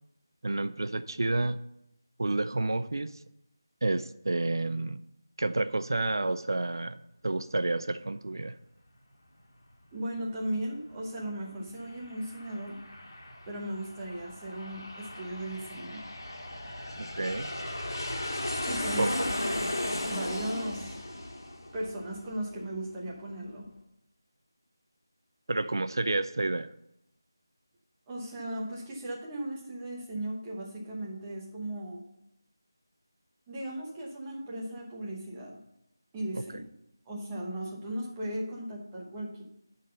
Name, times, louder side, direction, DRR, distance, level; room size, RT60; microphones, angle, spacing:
voice 1, 0.4-1.6 2.2-3.2 3.8-5.0 5.4-7.0 7.2-8.6 17.1-17.5 19.0-19.1 25.5-26.7 36.3-36.4, right 2 dB, 70° right, 12 dB, 0.4 m, -29 dB
voice 2, 9.9-12.8 13.4-16.0 18.7-19.3 19.5-21.0 21.7-23.7 28.1-32.0 33.5-35.6 36.1-36.6 37.1-39.4, right 1 dB, 10° right, -4 dB, 0.8 m, -37 dB
Aircraft, 11.7-22.9, left 1 dB, 85° left, 1.9 m, -36 dB
10.5 x 3.9 x 6.5 m, 0.81 s
figure-of-eight pair, 175°, 2 cm